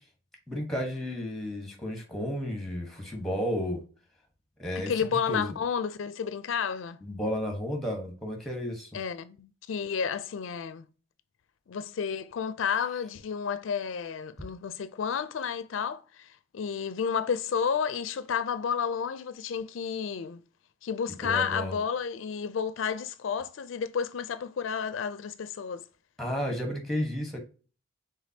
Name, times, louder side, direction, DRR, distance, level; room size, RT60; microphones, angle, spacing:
voice 1, 0.5-3.8 4.6-5.5 7.0-8.9 21.2-21.7 26.2-27.4, equal, ahead, 1.1 m, -32 dB
voice 2, 4.8-7.0 8.9-10.8 11.7-20.4 20.8-25.8, left 6 dB, 85° left, 0.4 m, -31 dB
5.0 x 3.7 x 2.8 m
head